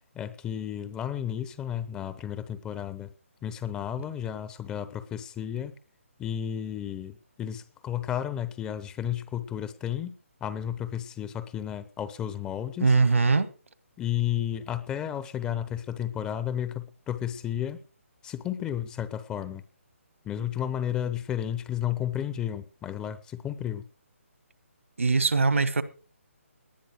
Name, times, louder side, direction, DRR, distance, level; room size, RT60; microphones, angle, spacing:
voice 1, 0.1-3.1 3.4-5.7 6.2-10.1 10.4-12.9 14.0-17.8 18.2-19.6 20.2-23.9, left 10 dB, 10° left, 0.9 m, -32 dB
voice 2, 12.8-13.5 25.0-25.8, right 4 dB, 65° right, 1.7 m, -21 dB
19.0 x 10.5 x 4.9 m
figure-of-eight pair, 140°, 8 cm